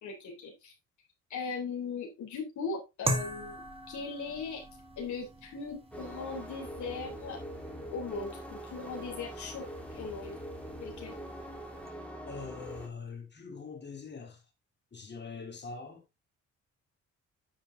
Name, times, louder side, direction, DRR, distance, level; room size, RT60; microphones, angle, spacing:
voice 1, 0.0-0.7 1.3-4.6 5.0-7.4 7.9-10.4 10.8-11.1, left 4 dB, 70° left, 3.4 m, -39 dB
sound 1, 3.0-11.9, right 1 dB, 20° right, 1.9 m, -41 dB
sound 2, 5.9-12.9, equal, 5° left, 2.5 m, -43 dB
voice 2, 12.3-14.4 14.9-16.0, left 5 dB, 35° left, 3.1 m, -43 dB
9.7 x 5.3 x 3.7 m
cardioid pair, 90°, 30 cm